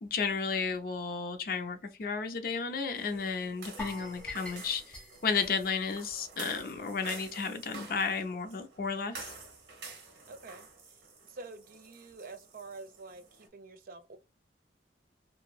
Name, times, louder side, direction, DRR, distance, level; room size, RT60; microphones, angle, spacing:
voice 1, 0.0-9.3, left 5 dB, 55° left, 0.5 m, -33 dB
sound 1, 3.0-13.5, right 4 dB, 85° right, 0.9 m, -49 dB
sound 2, 3.8-6.8 7.1-7.3 7.7-7.8, left 3 dB, 5° left, 0.8 m, -46 dB
voice 2, 10.3-10.7 11.3-14.2, right 3 dB, 50° right, 0.4 m, -47 dB
2.9 x 2.5 x 2.3 m
head